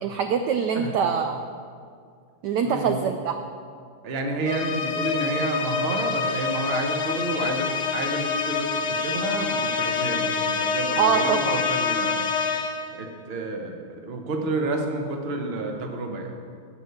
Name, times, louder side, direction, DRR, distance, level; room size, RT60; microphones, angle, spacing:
voice 1, 0.0-1.4 2.4-3.4 11.0-11.6, right 7 dB, 75° right, 6 dB, 0.9 m, -24 dB
voice 2, 2.6-3.0 4.0-12.3 12.9-16.3, right 2 dB, 40° right, 3 dB, 0.9 m, -30 dB
sound 1, 4.5-13.0, left 5 dB, 85° left, 1.7 m, -26 dB
12.5 x 5.2 x 8.0 m, 2.2 s
omnidirectional pair, 2.4 m